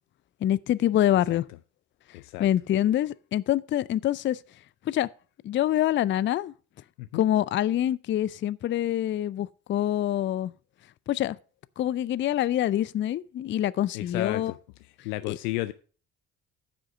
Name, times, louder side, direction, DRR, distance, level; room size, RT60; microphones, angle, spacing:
voice 1, 0.4-1.4 2.4-4.4 4.9-5.1 5.4-6.5 7.1-10.5 11.1-11.4 11.8-14.5 15.3-15.4, left 12 dB, 30° left, 0.4 m, -25 dB
voice 2, 2.1-2.5 7.0-7.3 13.9-14.5 15.0-15.7, left 18 dB, 75° left, 0.6 m, -32 dB
9.4 x 6.2 x 5.6 m
figure-of-eight pair, 45°, 45 cm